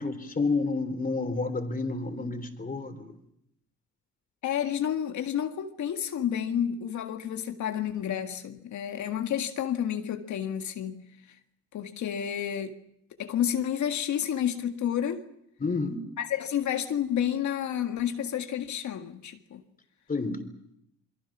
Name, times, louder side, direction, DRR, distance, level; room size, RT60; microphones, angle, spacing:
voice 1, 0.0-3.2 15.6-16.0 20.1-20.5, left 3 dB, 30° left, 3.4 m, -30 dB
voice 2, 4.4-11.0 11.7-12.7 13.2-15.2 16.2-19.6, left 9 dB, 70° left, 1.8 m, -30 dB
28.5 x 22.5 x 6.1 m
cardioid pair, 90°, 30 cm